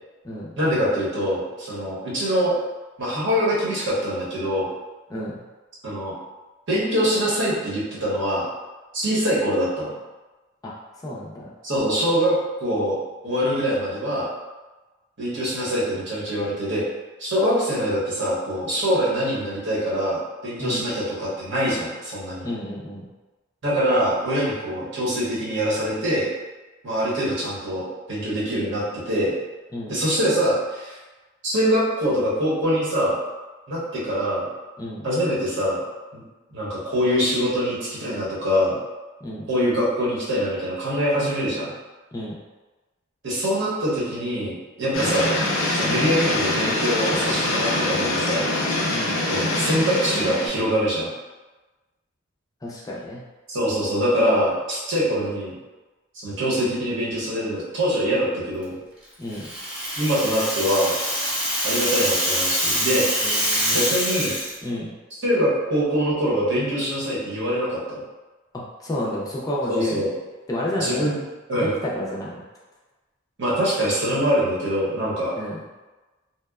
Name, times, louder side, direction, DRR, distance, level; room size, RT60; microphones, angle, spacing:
voice 1, 0.6-2.5 3.0-4.7 5.8-6.1 6.7-8.5 8.9-9.9 11.6-13.0 13.2-14.3 15.2-16.8 17.2-22.5 23.6-26.3 26.8-29.3 29.9-31.0 31.4-33.2 33.7-34.5 35.0-35.8 36.1-36.2 36.5-38.8 39.5-41.7 43.2-45.3 45.7-48.4 49.3-51.1 53.5-55.5 56.1-58.8 60.0-60.9 61.6-63.1 63.7-64.3 65.1-68.0 69.7-70.1 70.8-71.2 71.5-71.7 73.4-75.3, equal, 65° right, -6 dB, 0.8 m, -24 dB
voice 2, 5.1-5.4 10.6-11.5 20.6-20.9 22.4-23.1 29.7-30.0 34.8-35.1 39.2-39.5 42.1-42.4 48.9-49.2 52.6-53.2 59.2-59.5 63.2-63.9 64.6-64.9 68.8-70.0 70.5-71.2 71.5-72.4 75.4-75.6, left 1 dB, 15° left, -5 dB, 0.3 m, -30 dB
sound 1, 44.9-50.5, left 2 dB, 85° left, 0.5 m, -24 dB
Rattle (instrument), 59.3-64.5, equal, 5° right, 0.8 m, -25 dB
2.8 x 2.0 x 2.3 m, 1.2 s
head